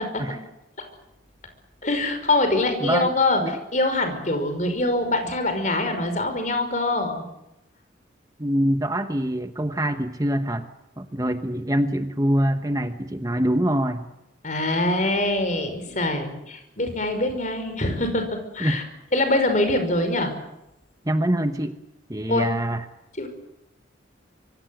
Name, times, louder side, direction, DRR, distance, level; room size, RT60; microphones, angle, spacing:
voice 1, 1.8-7.2 14.4-18.2 18.5-18.8 19.1-20.3 22.3-22.5 23.2-23.3, left 2 dB, 40° left, 7 dB, 5.5 m, -24 dB
voice 2, 2.8-3.1 3.4-3.6 8.4-10.7 11.0-14.1 18.6-18.8 21.0-21.7 22.1-22.8, right 1 dB, 20° right, 8 dB, 1.1 m, -24 dB
26.0 x 24.0 x 7.9 m, 0.89 s
head